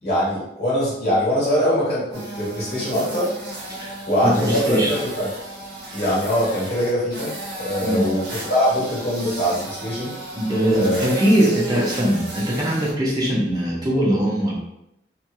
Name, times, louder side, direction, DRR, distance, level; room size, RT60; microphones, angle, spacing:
voice 1, 0.0-3.3 4.1-5.3 5.9-7.3 7.6-10.1 10.7-11.1, equal, 55° left, -9 dB, 1.2 m, -22 dB
sound 1, 2.1-12.9, right 1 dB, 60° right, 0.7 m, -34 dB
voice 2, 3.8-4.9 7.8-8.1 10.3-14.6, right 1 dB, 20° right, -5 dB, 0.6 m, -21 dB
2.8 x 2.4 x 2.2 m, 0.82 s
head